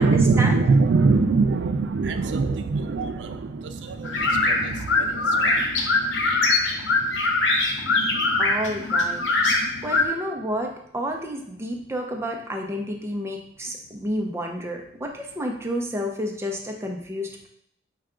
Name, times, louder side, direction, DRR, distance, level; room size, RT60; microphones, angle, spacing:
voice 1, 0.0-6.2 7.1-7.6 8.0-8.4, right 4 dB, 75° right, 7 dB, 0.4 m, -23 dB
sound 1, 4.0-10.1, left 3 dB, 80° left, 0.7 m, -22 dB
voice 2, 8.4-9.2 9.8-17.5, equal, 15° right, 1 dB, 0.6 m, -30 dB
5.6 x 2.3 x 3.7 m, 0.76 s
head